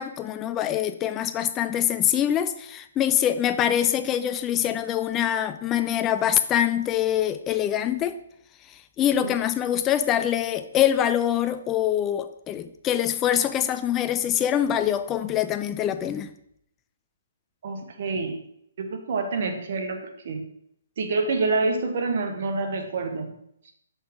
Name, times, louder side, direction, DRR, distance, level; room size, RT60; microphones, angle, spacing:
voice 1, 0.0-8.2 8.7-16.3, left 10 dB, 20° left, 0.4 m, -24 dB
voice 2, 17.6-18.4 18.8-20.4 21.0-23.3, right 3 dB, 55° right, 1.1 m, -27 dB
5.8 x 5.6 x 3.5 m
hypercardioid pair, 155°, 0 cm